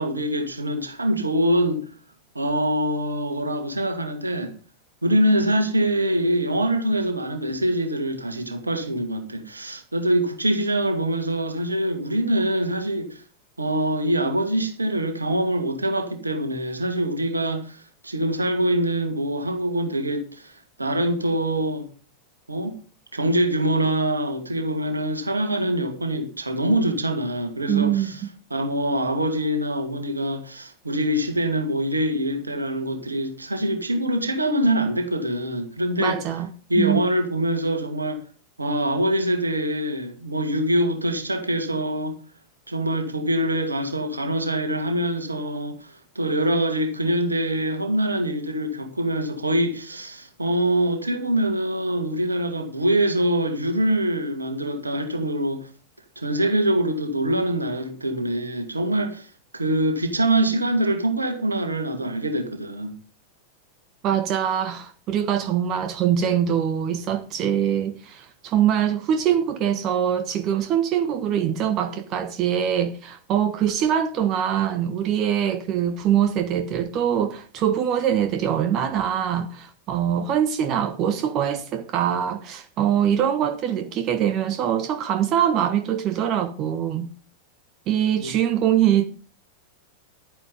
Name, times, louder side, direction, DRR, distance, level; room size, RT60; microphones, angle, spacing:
voice 1, 0.0-1.8 2.3-4.5 5.0-13.2 13.6-21.9 22.5-22.8 23.1-28.2 28.5-36.2 36.7-38.2 38.6-42.2 42.7-55.7 56.2-59.3 59.5-63.0 88.2-88.3, right 1 dB, 80° right, 2.3 m, -24 dB
voice 2, 27.7-28.3 36.0-36.5 36.8-37.1 64.0-87.1 87.9-89.0, right 9 dB, 35° right, 1.2 m, -23 dB
11.0 x 9.9 x 5.2 m
figure-of-eight pair, 90°, 0 cm